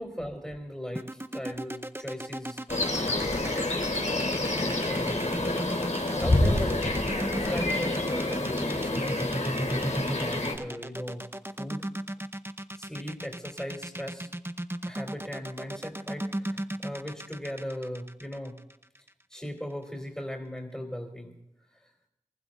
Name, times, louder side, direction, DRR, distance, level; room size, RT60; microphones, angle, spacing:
voice 1, 0.0-2.6 3.2-3.6 4.5-5.3 6.2-6.8 7.4-11.2 11.6-11.8 12.8-14.3 14.8-18.6 19.3-21.3, equal, 5° left, -1 dB, 3.7 m, -38 dB
sound 1, 1.0-19.1, right 1 dB, 15° right, 0.8 m, -36 dB
sound 2, 2.7-10.6, left 2 dB, 65° left, 3.5 m, -28 dB
26.0 x 15.5 x 2.7 m, 0.88 s
wide cardioid pair, 45°, 13 cm